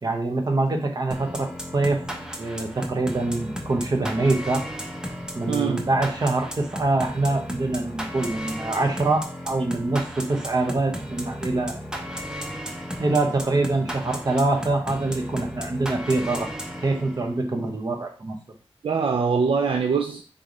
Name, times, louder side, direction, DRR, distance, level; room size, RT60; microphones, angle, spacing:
voice 1, 0.0-2.0 2.4-4.7 5.3-12.1 13.0-16.5 16.8-18.4, right 2 dB, 40° right, 0.9 m, -25 dB
sound 1, 1.1-17.4, equal, 5° right, 0.7 m, -35 dB
voice 2, 5.5-5.9 18.8-20.2, right 5 dB, 60° right, 0.4 m, -23 dB
3.7 x 3.3 x 3.9 m
wide cardioid pair, 115°, 10 cm